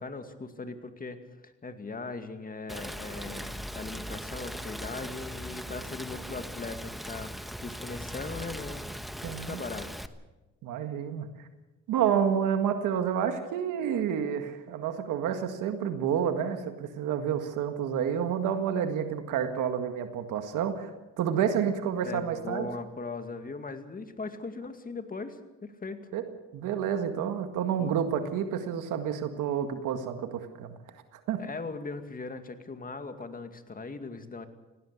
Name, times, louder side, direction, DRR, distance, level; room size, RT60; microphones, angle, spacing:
voice 1, 0.0-9.9 22.0-26.1 27.8-28.0 31.4-34.5, left 3 dB, 30° left, 8 dB, 2.3 m, -39 dB
Rain, 2.7-10.1, equal, ahead, 1.2 m, -39 dB
voice 2, 9.2-9.6 10.6-11.3 11.9-20.9 21.2-22.7 26.1-26.2 26.5-30.7 31.1-31.4, right 8 dB, 90° right, 7 dB, 1.9 m, -29 dB
19.0 x 17.0 x 8.4 m, 1.1 s
cardioid pair, 90°, 30 cm